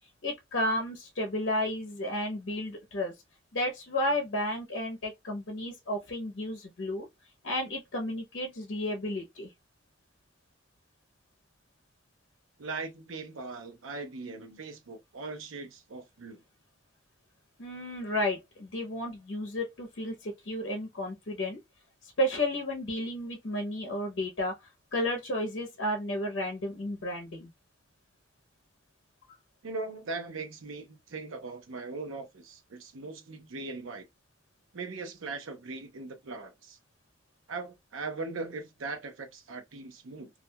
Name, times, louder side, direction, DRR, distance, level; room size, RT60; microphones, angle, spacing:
voice 1, 0.2-3.1 3.5-7.1 7.4-9.5 17.6-21.6 22.0-27.5, left 1 dB, 70° left, 0.7 m, -32 dB
voice 2, 12.6-16.4 29.6-34.1 34.7-36.8 37.5-40.3, right 3 dB, 90° right, 0.6 m, -39 dB
2.4 x 2.2 x 2.7 m
head